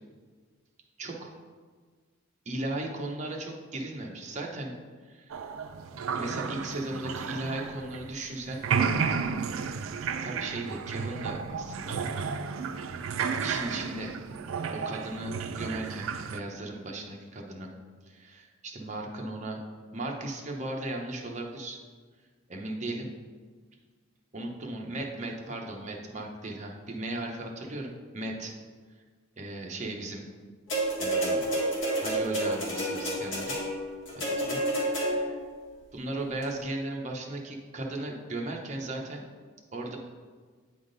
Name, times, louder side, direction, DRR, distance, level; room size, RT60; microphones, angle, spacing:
voice 1, 1.0-1.3 2.5-4.7 5.0-5.5 6.2-8.6 10.2-12.0 13.4-14.1 14.7-17.7 18.1-19.6 19.9-21.8 22.5-23.1 24.3-28.5 29.4-30.2 31.0-31.5 32.0-33.6 34.1-34.6 34.9-35.4 35.9-39.2 39.7-40.0, right 2 dB, 35° right, 0 dB, 0.8 m, -36 dB
sound 1, 5.3-8.3 8.5-16.4, right 6 dB, 90° right, 0.4 m, -32 dB
sound 2, 30.7-35.4 36.4-36.5, right 1 dB, 70° left, 1.7 m, -29 dB
8.9 x 3.6 x 3.9 m, 1.5 s
head